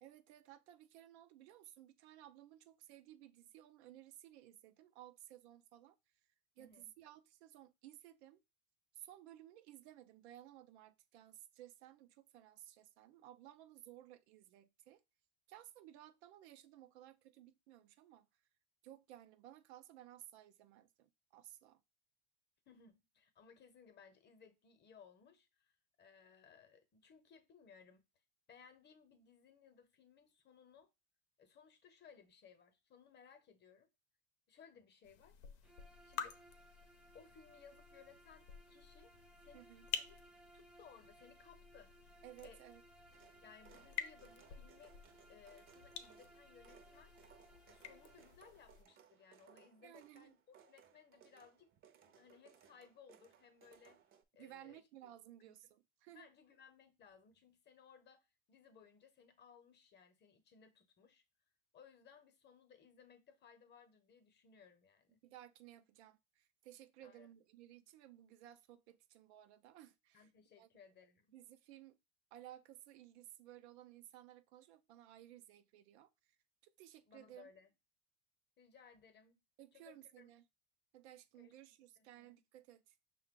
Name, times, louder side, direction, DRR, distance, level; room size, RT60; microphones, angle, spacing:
voice 1, 0.0-6.0 6.6-8.4 8.9-15.0 15.5-18.3 18.8-21.8 39.5-39.9 42.2-42.8 49.8-50.4 54.4-56.3 65.2-70.3 70.6-70.7 71.3-72.0 72.3-76.1 76.6-77.5 79.6-80.4 80.9-83.0, right 13 dB, 80° right, 0.5 m, -58 dB
voice 2, 6.6-6.9 22.7-25.7 26.0-28.1 28.5-30.9 31.4-33.9 34.5-35.4 36.0-36.4 37.1-39.1 39.4-39.7 39.9-40.2 40.5-42.6 43.4-44.9 45.3-47.1 47.7-51.7 52.0-54.0 54.3-55.1 55.4-55.6 56.1-61.2 61.7-65.2 67.0-67.3 70.1-71.3 77.1-77.7 78.6-79.3 79.7-80.3 81.4-81.5 82.0-82.4, left 6 dB, 30° left, 0.9 m, -63 dB
sound 1, 35.0-48.8, left 8 dB, 85° left, 0.7 m, -51 dB
Bowed string instrument, 35.6-48.4, right 2 dB, 5° right, 0.3 m, -64 dB
Restoring Fatehpur Sikri, 43.1-54.2, right 8 dB, 40° right, 0.6 m, -66 dB
5.5 x 2.3 x 3.6 m
supercardioid pair, 110°, 33 cm